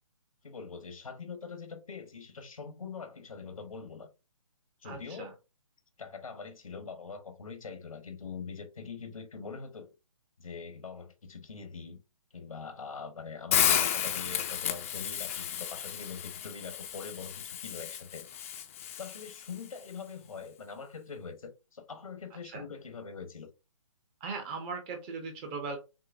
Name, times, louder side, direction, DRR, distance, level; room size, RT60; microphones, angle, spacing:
voice 1, 0.4-4.1 4.8-5.3 6.0-9.9 10.4-12.0 12.3-18.3 19.0-23.5, left 5 dB, 80° left, 1.1 m, -43 dB
voice 2, 4.8-5.3 22.5-22.6 24.2-25.8, right 4 dB, 20° right, 0.6 m, -38 dB
Hiss, 13.5-19.6, left 10 dB, 25° left, 0.4 m, -32 dB
6.0 x 2.0 x 2.5 m
hypercardioid pair, 150°, 17 cm